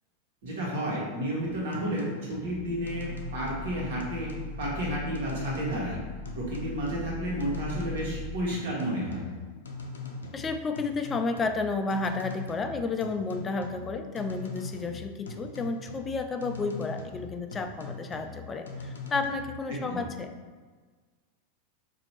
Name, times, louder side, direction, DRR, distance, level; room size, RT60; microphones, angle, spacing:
voice 1, 0.4-4.3 4.6-6.0 6.3-9.2 19.7-20.0, equal, 70° right, -5 dB, 1.4 m, -31 dB
sound 1, 1.4-19.6, left 3 dB, 90° left, 0.5 m, -42 dB
sound 2, 2.5-8.4, left 2 dB, 50° right, 1.5 m, -41 dB
voice 2, 10.3-20.3, left 3 dB, 25° left, 7 dB, 0.4 m, -31 dB
2.9 x 2.7 x 4.4 m, 1.4 s
hypercardioid pair, 100°, 0 cm